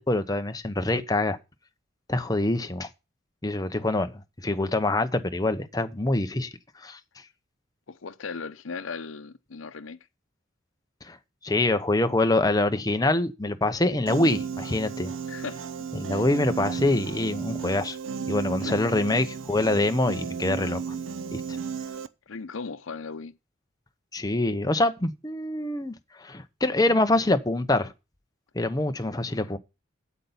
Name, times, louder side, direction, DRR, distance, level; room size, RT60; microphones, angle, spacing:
voice 1, 0.0-1.4 2.1-2.9 3.4-4.1 4.4-6.5 6.8-7.0 11.0-11.2 11.4-15.1 15.9-18.0 18.3-21.0 21.3-21.6 24.1-27.9 28.5-29.6, left 2 dB, 20° left, 0.8 m, -25 dB
voice 2, 7.9-10.0 15.3-16.2 18.6-18.8 22.3-23.4, left 4 dB, 80° left, 0.7 m, -38 dB
Piano, 14.1-22.1, right 6 dB, 75° right, 0.7 m, -34 dB
8.4 x 8.1 x 5.5 m
head